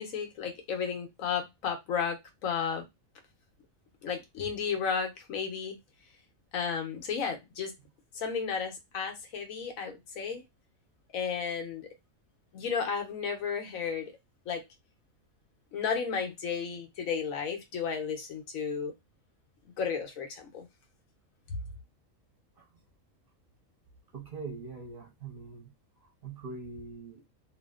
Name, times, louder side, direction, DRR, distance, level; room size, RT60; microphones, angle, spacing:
voice 1, 0.0-2.8 4.0-5.8 6.5-7.8 8.1-10.4 11.1-11.9 12.5-14.1 14.5-14.6 15.7-18.9 19.8-20.7 21.5-21.6, left 6 dB, 90° left, 1.2 m, -33 dB
voice 2, 24.1-25.7 26.2-27.2, right 4 dB, 50° right, 0.9 m, -42 dB
2.7 x 2.5 x 2.2 m
omnidirectional pair, 1.4 m